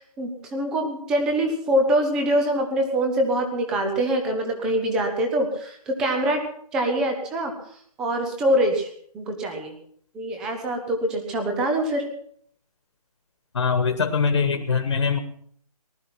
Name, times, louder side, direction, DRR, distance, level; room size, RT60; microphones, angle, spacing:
voice 1, 0.0-6.4 6.7-7.5 8.0-8.9 9.1-9.7 10.1-12.0, right 1 dB, 5° right, 4 dB, 0.6 m, -24 dB
voice 2, 13.5-15.2, left 5 dB, 50° left, 7 dB, 1.5 m, -22 dB
19.0 x 12.0 x 6.0 m, 0.63 s
hypercardioid pair, 175°, 20 cm